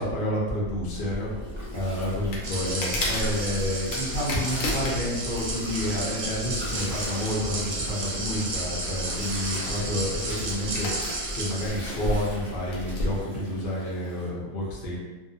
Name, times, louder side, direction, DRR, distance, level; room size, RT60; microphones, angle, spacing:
voice 1, 0.0-1.3 1.7-10.9 11.3-15.0, left 1 dB, 50° left, -5 dB, 0.7 m, -29 dB
sound 1, 0.6-13.2, left 1 dB, 70° left, 1.0 m, -34 dB
Gurgling, 1.0-14.3, equal, 20° right, 1.0 m, -41 dB
sound 2, 2.4-11.7, right 2 dB, 60° right, 0.9 m, -33 dB
2.6 x 2.3 x 2.6 m, 1.2 s
omnidirectional pair, 1.5 m